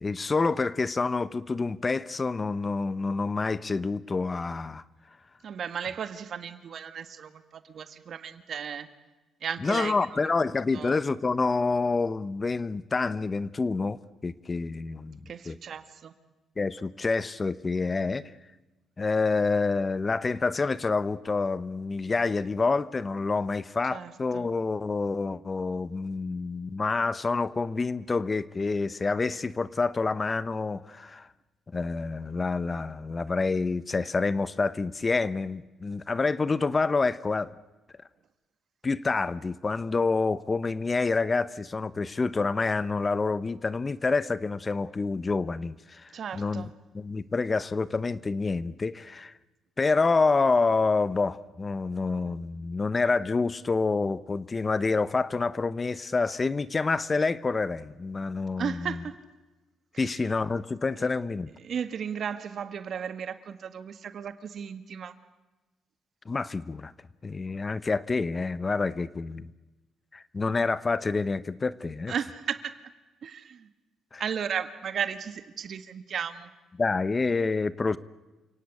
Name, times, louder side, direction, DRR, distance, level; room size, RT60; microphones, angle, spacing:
voice 1, 0.0-4.8 9.6-15.2 15.5-15.6 16.6-18.3 19.0-31.3 31.7-37.5 38.8-46.6 46.9-49.3 49.8-59.0 60.0-61.5 66.3-66.9 67.2-69.5 70.1-72.1 74.1-74.2 76.8-78.0, left 4 dB, 30° left, 0.8 m, -27 dB
voice 2, 5.4-8.9 9.4-9.9 10.7-11.0 15.2-16.1 23.9-24.5 46.1-46.7 58.6-59.2 59.9-60.2 61.0-61.1 61.6-65.1 72.1-72.7 73.2-73.7 74.2-76.5, right 7 dB, 60° right, 1.7 m, -35 dB
29.0 x 17.0 x 8.5 m
cardioid pair, 90°, 0 cm